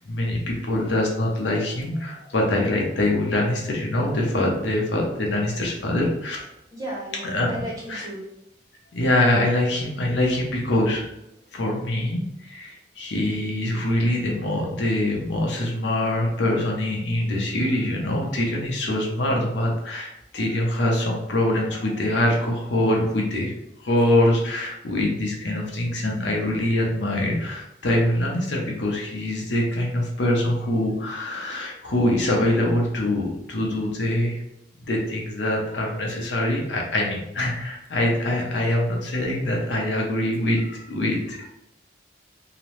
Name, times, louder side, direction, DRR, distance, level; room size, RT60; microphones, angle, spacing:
voice 1, 0.1-6.5 7.2-7.5 7.9-8.1 8.9-11.0 11.5-23.5 23.8-34.4 34.9-41.5, left 1 dB, 85° left, -1 dB, 0.7 m, -24 dB
voice 2, 6.7-8.3, equal, 20° right, -5 dB, 0.7 m, -35 dB
2.9 x 2.0 x 3.0 m, 0.81 s
head